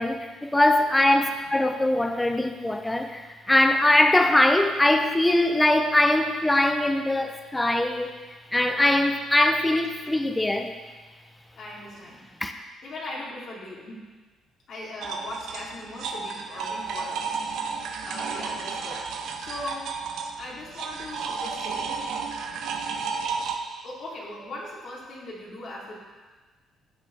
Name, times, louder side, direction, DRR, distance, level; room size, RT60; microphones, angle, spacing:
voice 1, 0.0-8.2 8.5-10.7 12.4-12.5, left 1 dB, 15° left, 6 dB, 1.0 m, -22 dB
voice 2, 11.5-12.2 12.8-14.1 14.7-17.3 18.0-19.0 19.4-19.9 20.4-21.9 23.8-26.0, left 1 dB, 55° left, -5 dB, 3.4 m, -39 dB
sound 1, 15.0-23.6, right 5 dB, 65° right, 0.9 m, -32 dB
15.0 x 7.1 x 3.6 m, 1.3 s
hypercardioid pair, 45°, 0 cm